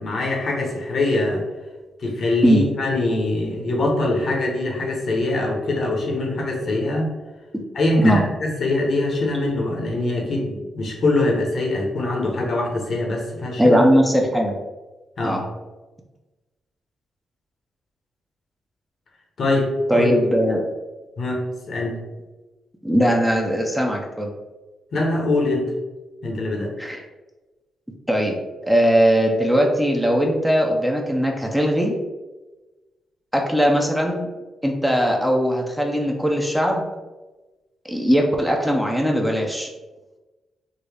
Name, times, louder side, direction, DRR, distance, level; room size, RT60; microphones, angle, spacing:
voice 1, 0.0-1.4 2.0-7.1 7.7-8.2 8.6-13.8 15.2-15.4 19.4-20.1 21.2-22.0 24.9-25.7 26.2-26.7, left 2 dB, 60° left, 0 dB, 0.9 m, -23 dB
voice 2, 13.6-14.5 15.2-15.4 19.9-20.6 22.8-24.3 26.8-27.0 28.1-28.3 28.7-31.9 33.3-34.3 34.6-36.8 37.9-39.7, equal, 5° right, 1 dB, 0.6 m, -19 dB
3.8 x 2.1 x 3.4 m, 1.2 s
supercardioid pair, 60°, 0 cm